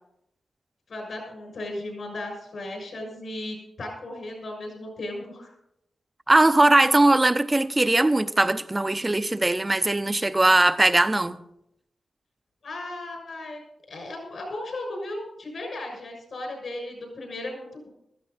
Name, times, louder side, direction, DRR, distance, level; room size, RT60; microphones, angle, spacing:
voice 1, 0.9-5.5 12.6-13.6 13.9-17.9, left 1 dB, 65° left, 6.5 m, -36 dB
voice 2, 6.3-11.4, right 2 dB, 20° right, 0.7 m, -20 dB
15.5 x 13.5 x 4.1 m
cardioid pair, 80°, 0 cm